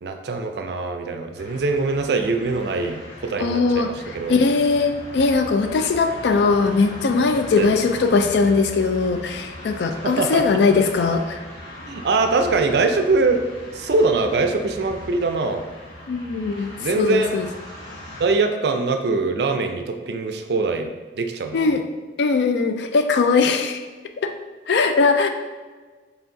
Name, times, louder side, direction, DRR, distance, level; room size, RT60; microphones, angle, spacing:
voice 1, 0.0-4.5 7.6-7.7 10.0-10.6 11.9-13.4 13.7-15.6 16.8-17.3 18.2-21.7, right 3 dB, 60° right, 6 dB, 0.4 m, -23 dB
sound 1, 1.3-18.3, left 1 dB, 85° left, 1.3 m, -39 dB
voice 2, 3.4-3.9 4.3-11.4 16.1-17.5 21.5-21.8 22.2-23.8 24.2-24.3 24.7-25.3, left 4 dB, 70° left, 7 dB, 0.4 m, -20 dB
4.5 x 3.3 x 2.7 m, 1.4 s
head